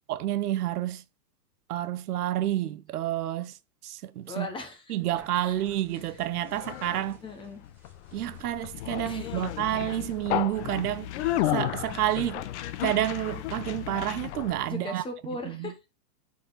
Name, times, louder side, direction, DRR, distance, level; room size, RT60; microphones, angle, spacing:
voice 1, 0.1-1.0 1.7-4.5 4.9-7.2 8.1-12.4 12.8-15.0 15.4-15.7, right 13 dB, 70° right, 0.8 m, -29 dB
sound 1, 4.2-8.9 9.3-9.8 10.1-10.6 11.1-15.0, right 1 dB, 5° right, 2.2 m, -59 dB
voice 2, 4.3-4.9 5.4-5.5 7.2-7.6 9.0-9.5 14.7-15.8, left 2 dB, 10° left, 1.1 m, -38 dB
Conversation, 5.2-14.7, left 13 dB, 45° left, 0.7 m, -33 dB
9.1 x 4.2 x 3.9 m
supercardioid pair, 150°, 47 cm